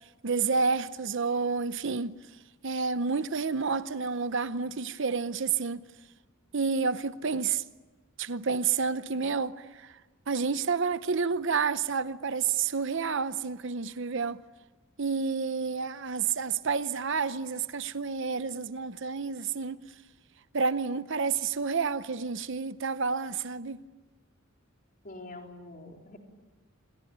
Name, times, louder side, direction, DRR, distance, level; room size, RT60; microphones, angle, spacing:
voice 1, 0.2-2.2 2.6-5.8 6.5-7.6 8.2-9.9 10.3-14.4 15.0-19.8 20.5-23.8, right 5 dB, 60° right, 0.8 m, -29 dB
voice 2, 25.0-26.2, left 2 dB, 45° left, 4.0 m, -45 dB
28.5 x 21.5 x 8.8 m
head